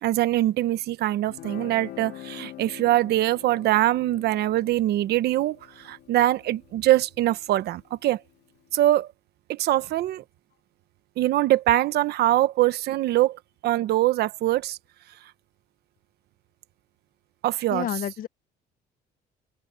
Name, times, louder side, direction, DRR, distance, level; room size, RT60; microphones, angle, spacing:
voice 1, 0.0-8.2 8.7-9.1 9.5-10.2 11.2-14.8 17.4-17.9, right 14 dB, 70° right, 1.1 m, -23 dB
Guitar, 1.3-8.4, left 14 dB, 75° left, 2.4 m, -45 dB
voice 2, 17.7-18.3, left 10 dB, 55° left, 1.1 m, -29 dB
cardioid pair, 110°, 17 cm